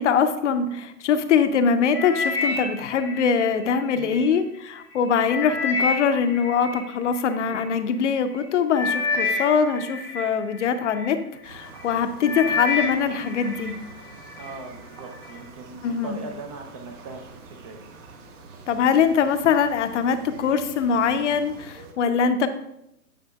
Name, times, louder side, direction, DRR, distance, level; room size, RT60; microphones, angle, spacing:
voice 1, 0.0-13.7 15.8-16.2 18.7-22.5, left 6 dB, 50° left, 10 dB, 0.7 m, -23 dB
sound 1, 1.9-4.3 4.8-7.6 8.3-8.5 8.7-11.1 11.6-11.9 12.2-13.7 14.1-14.6 15.2-15.3, left 3 dB, 5° left, 0.9 m, -29 dB
voice 2, 3.9-4.4 14.4-17.8, right 3 dB, 25° right, 3 dB, 0.5 m, -40 dB
sound 2, 11.4-21.9, right 3 dB, 50° right, 1.6 m, -45 dB
9.9 x 6.0 x 2.3 m, 0.81 s
hypercardioid pair, 130°, 48 cm